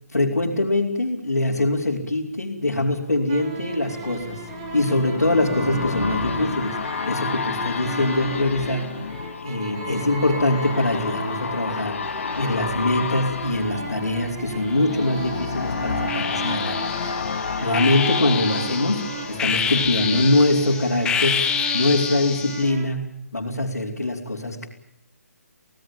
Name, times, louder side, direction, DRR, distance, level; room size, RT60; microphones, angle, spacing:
voice 1, 0.1-4.4 4.7-6.8 7.1-8.9 9.4-12.0 12.4-17.1 17.6-24.7, left 2 dB, 85° left, -3 dB, 4.2 m, -23 dB
sound 1, 2.9-20.6 21.0-21.1, left 6 dB, 55° left, 1.8 m, -31 dB
sound 2, 3.3-22.8, right 6 dB, 30° right, 3.4 m, -36 dB
sound 3, 14.7-15.4 16.1-22.7, left 7 dB, 10° left, 1.7 m, -28 dB
26.5 x 18.5 x 9.2 m, 0.79 s
figure-of-eight pair, 145°, 8 cm